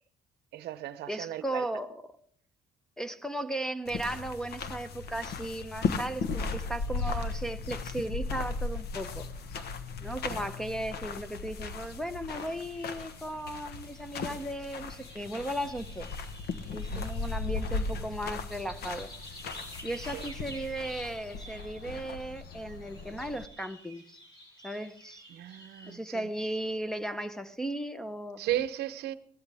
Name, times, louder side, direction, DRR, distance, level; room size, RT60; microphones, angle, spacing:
voice 1, 0.5-1.6 10.3-10.4 16.9-17.1 20.1-20.2 25.3-26.2 28.4-29.2, right 13 dB, 75° right, 0.8 m, -35 dB
voice 2, 1.1-2.1 3.0-9.3 10.0-16.1 16.7-19.1 19.8-24.2 24.6-25.2 25.9-28.4, right 1 dB, 5° left, 0.7 m, -36 dB
sound 1, 3.9-23.5, left 4 dB, 70° left, 1.2 m, -37 dB
sound 2, 12.3-25.9, equal, 25° left, 6.7 m, -51 dB
17.5 x 14.0 x 3.4 m
cardioid pair, 110°, 17 cm